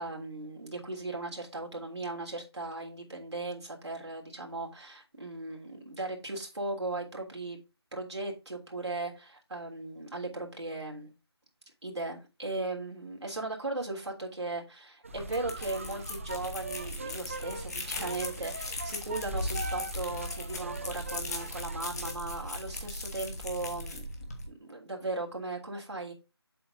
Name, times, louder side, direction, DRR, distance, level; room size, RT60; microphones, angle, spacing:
voice 1, 0.0-7.6 7.9-11.1 11.8-24.0 24.5-26.1, right 2 dB, 90° right, 3.3 m, -37 dB
sound 1, 15.0-22.1, right 3 dB, 30° right, 0.5 m, -42 dB
sound 2, 15.1-24.5, left 2 dB, 40° left, 1.7 m, -38 dB
7.7 x 5.4 x 3.9 m
figure-of-eight pair, 165°, 14 cm